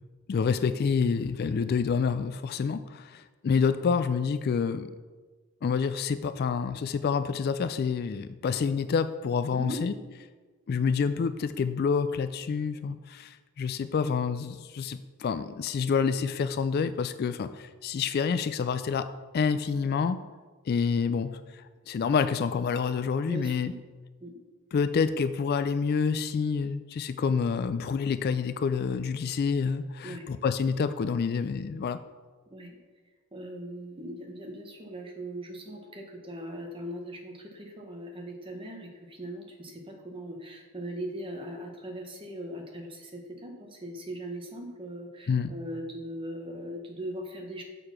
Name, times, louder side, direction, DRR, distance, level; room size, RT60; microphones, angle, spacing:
voice 1, 0.3-4.9 5.6-9.9 10.7-19.1 19.3-20.2 20.7-23.7 24.7-32.0 45.3-45.5, left 5 dB, 45° left, 12 dB, 0.3 m, -28 dB
voice 2, 9.5-9.8 23.3-23.7 24.2-24.3 30.0-30.3 32.5-32.8 33.3-47.6, right 1 dB, 25° right, 2 dB, 1.2 m, -39 dB
6.7 x 6.5 x 5.8 m, 1.4 s
head